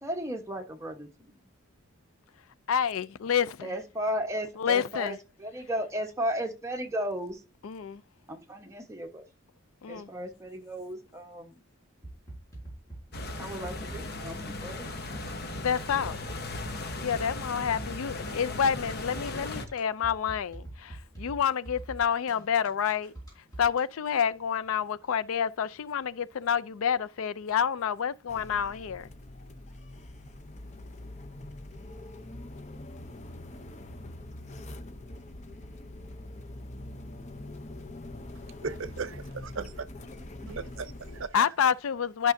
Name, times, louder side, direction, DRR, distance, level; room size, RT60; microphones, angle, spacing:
voice 1, 0.0-1.4 3.6-7.4 8.3-9.2 9.9-11.6 13.4-14.9 40.4-40.6, equal, 15° right, 1.1 m, -35 dB
voice 2, 2.7-3.7 4.6-5.2 7.6-8.0 9.8-10.1 15.5-16.2 17.0-23.1 23.6-29.1 41.3-42.3, left 7 dB, 75° left, 0.4 m, -28 dB
sound 1, 12.0-23.8, right 1 dB, 15° left, 4.5 m, -43 dB
sound 2, 13.1-19.6, left 2 dB, 50° left, 1.0 m, -37 dB
sound 3, 28.3-41.3, left 1 dB, 35° left, 0.6 m, -43 dB
voice 3, 38.6-39.9 40.5-41.5, right 5 dB, 65° right, 0.6 m, -37 dB
11.5 x 6.0 x 2.6 m
head